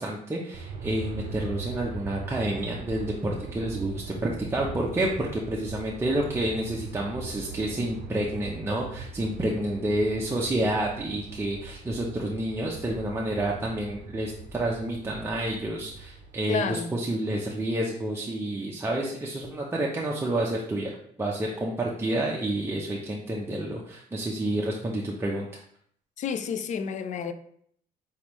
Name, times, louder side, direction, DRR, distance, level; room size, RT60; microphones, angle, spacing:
voice 1, 0.0-25.6, right 1 dB, 15° right, 0.6 m, -29 dB
Aircraft, 0.5-16.7, right 4 dB, 55° right, 0.6 m, -40 dB
voice 2, 16.5-16.9 26.2-27.3, left 6 dB, 45° left, 0.4 m, -30 dB
4.3 x 3.5 x 3.0 m
cardioid pair, 110°, 17 cm